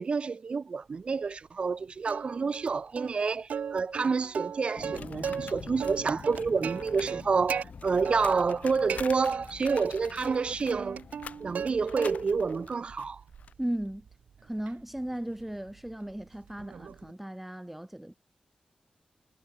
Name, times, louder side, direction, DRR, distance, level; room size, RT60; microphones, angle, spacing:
voice 1, 0.0-11.0 11.4-13.2, right 5 dB, 45° right, 0.8 m, -29 dB
Plucked string instrument, 2.0-2.7 3.0-3.1 3.5-5.5 5.8-7.6 8.0-8.6 8.9-9.9 10.2-11.7 12.0-12.5 12.9-17.1, right 7 dB, 85° right, 0.4 m, -37 dB
sound 1, 4.8-12.7, left 5 dB, 60° left, 2.4 m, -47 dB
sound 2, 4.9-7.2 7.4-13.5, left 6 dB, 80° left, 1.1 m, -47 dB
voice 2, 13.6-14.0 14.4-18.1, right 1 dB, 5° right, 0.5 m, -36 dB
wide cardioid pair, 150°, 2 cm